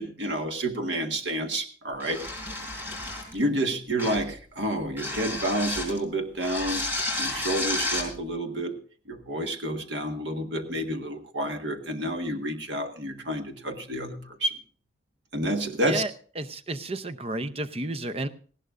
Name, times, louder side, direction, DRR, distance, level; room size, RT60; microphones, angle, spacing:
voice 1, 0.0-2.2 3.3-6.8 7.2-8.7 9.1-14.5 15.3-16.0, right 1 dB, 75° right, 5 dB, 1.6 m, -29 dB
sound 1, 2.0-3.4 4.0-4.3 5.0-6.0 6.4-8.1, left 2 dB, 10° right, 4.1 m, -31 dB
voice 2, 16.4-18.3, right 2 dB, 30° right, 12 dB, 0.7 m, -31 dB
18.5 x 15.5 x 2.5 m, 0.42 s
head